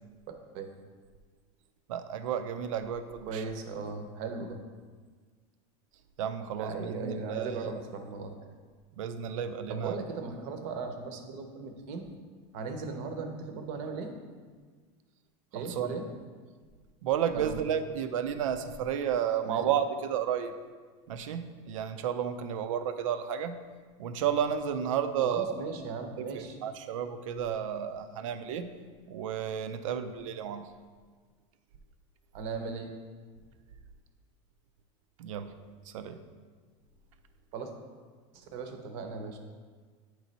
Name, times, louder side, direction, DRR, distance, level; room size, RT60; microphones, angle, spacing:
voice 1, 1.9-3.4 6.2-7.7 8.9-10.0 15.5-15.9 17.0-20.5 21.1-23.6 24.0-25.5 26.2-28.7 29.1-30.7 35.2-35.5 35.9-36.2, right 8 dB, 90° right, 10 dB, 0.5 m, -32 dB
voice 2, 3.3-4.6 6.6-8.3 9.7-12.0 12.5-14.1 15.5-16.1 17.3-17.6 19.4-19.7 25.2-26.6 32.3-32.9 37.5-37.7 38.3-39.4, right 4 dB, 40° right, 5 dB, 0.7 m, -37 dB
9.0 x 3.1 x 3.9 m, 1.5 s
supercardioid pair, 170°, 16 cm